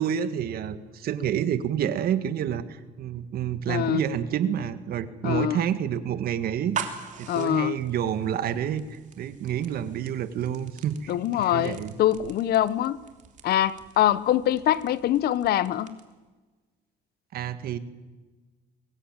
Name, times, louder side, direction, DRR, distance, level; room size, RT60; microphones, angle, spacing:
voice 1, 0.0-6.8 7.2-11.9 17.3-17.8, right 9 dB, 65° right, 12 dB, 1.8 m, -29 dB
voice 2, 3.7-4.0 5.2-5.6 7.3-7.8 11.1-13.0 13.4-16.0, left 12 dB, 65° left, 18 dB, 1.0 m, -24 dB
sound 1, 6.5-16.2, right 7 dB, 45° right, 3.1 m, -43 dB
24.0 x 20.5 x 9.0 m, 1.3 s
cardioid pair, 110°, 17 cm